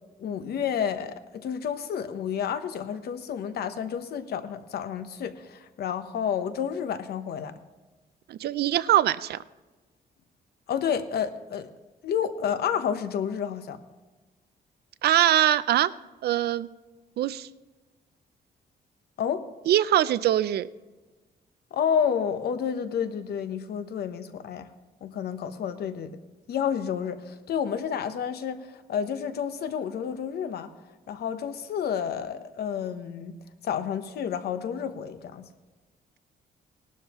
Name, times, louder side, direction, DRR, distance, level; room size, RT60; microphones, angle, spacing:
voice 1, 0.2-7.5 10.7-11.7 12.0-13.8 19.2-19.5 21.7-24.7 25.0-26.1 26.5-30.7 31.1-33.4 33.6-35.5, left 8 dB, 75° left, 10 dB, 0.9 m, -30 dB
voice 2, 8.3-9.4 15.0-15.9 16.2-16.7 17.2-17.5 19.7-20.7, right 12 dB, 75° right, 16 dB, 0.5 m, -22 dB
19.0 x 12.0 x 3.0 m, 1.2 s
wide cardioid pair, 155°, 17 cm